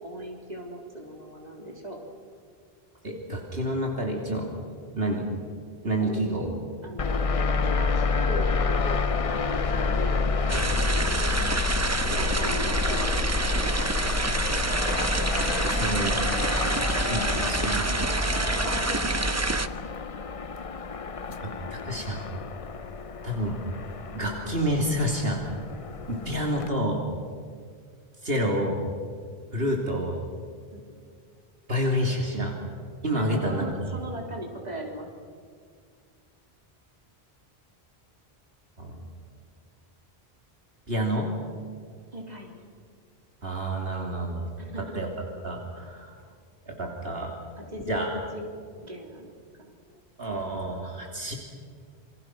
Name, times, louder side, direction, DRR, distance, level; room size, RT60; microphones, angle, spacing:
voice 1, 0.0-2.0 6.0-6.5 6.8-7.3 7.5-10.2 12.1-13.7 18.6-19.3 24.2-24.5 30.7-30.8 33.2-35.1 42.1-42.6 44.6-45.1 47.7-48.5 48.8-49.3, equal, 40° right, 0 dB, 3.8 m, -38 dB
voice 2, 3.0-4.5 5.0-5.3 5.8-6.5 15.7-16.2 16.6-16.7 17.0-18.5 21.7-22.2 23.2-23.6 24.1-25.4 26.1-27.0 28.2-28.8 29.5-30.2 31.7-32.5 33.0-33.7 38.8-39.0 40.9-41.3 43.4-44.5 44.8-45.1 45.4-46.1 46.7-47.3 47.9-48.1 50.2-51.4, equal, 65° right, 0 dB, 3.3 m, -28 dB
sound 1, 7.0-26.7, left 4 dB, 35° left, 0.7 m, -29 dB
sound 2, 10.5-19.7, right 2 dB, 20° right, 0.6 m, -27 dB
28.0 x 24.5 x 6.1 m, 2.1 s
omnidirectional pair, 1.1 m